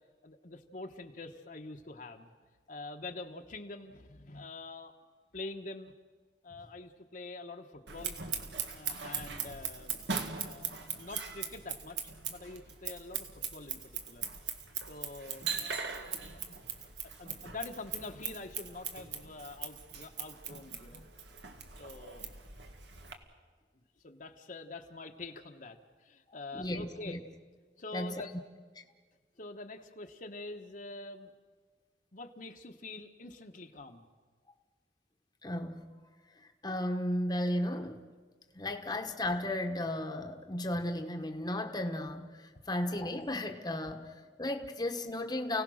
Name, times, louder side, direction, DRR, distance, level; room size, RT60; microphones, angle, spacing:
voice 1, 0.2-2.3 2.7-4.9 5.3-5.9 6.4-8.1 8.7-10.0 10.4-14.2 14.8-15.8 16.5-16.9 17.2-21.0 21.8-22.3 23.0-23.2 23.7-27.2 27.8-28.3 29.4-31.3 32.1-34.1, left 2 dB, 50° left, 4 dB, 1.2 m, -46 dB
Scissors, 7.9-23.1, right 6 dB, 80° right, 1.9 m, -40 dB
voice 2, 26.5-27.2 27.9-28.2 35.4-35.9 36.6-38.0 38.5-42.4 42.7-45.6, left 1 dB, 25° left, 4 dB, 1.2 m, -34 dB
30.0 x 17.5 x 6.4 m, 1.5 s
head